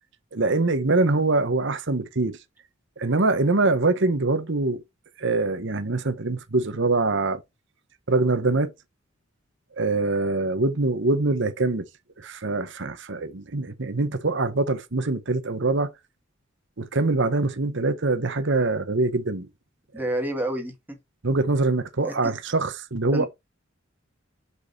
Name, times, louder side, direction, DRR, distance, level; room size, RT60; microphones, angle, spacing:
voice 1, 0.3-2.4 3.0-4.8 5.2-7.4 8.1-8.7 9.8-11.9 12.2-15.9 16.8-19.5 21.2-23.3, right 2 dB, 65° right, 1.1 m, -24 dB
voice 2, 19.9-21.0 22.0-22.3 23.1-23.3, right 1 dB, 10° right, 2.1 m, -29 dB
6.3 x 5.4 x 4.1 m
head